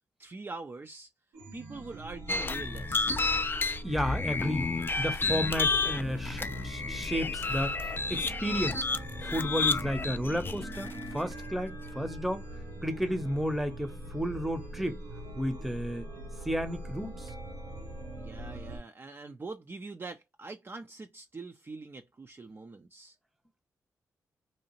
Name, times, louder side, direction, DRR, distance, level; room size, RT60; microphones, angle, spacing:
voice 1, 0.2-1.1 1.5-3.2 18.2-23.1, right 3 dB, 35° right, 0.5 m, -44 dB
Chime, 1.3-18.8, right 1 dB, 85° right, 1.0 m, -42 dB
sound 1, 2.3-11.2, left 4 dB, 30° left, 0.4 m, -31 dB
voice 2, 3.8-4.7 5.0-7.7 8.1-8.8 9.2-12.4 12.8-15.0 15.4-16.1 16.4-17.3, equal, ahead, 0.8 m, -32 dB
2.7 x 2.3 x 2.9 m
hypercardioid pair, 45°, 7 cm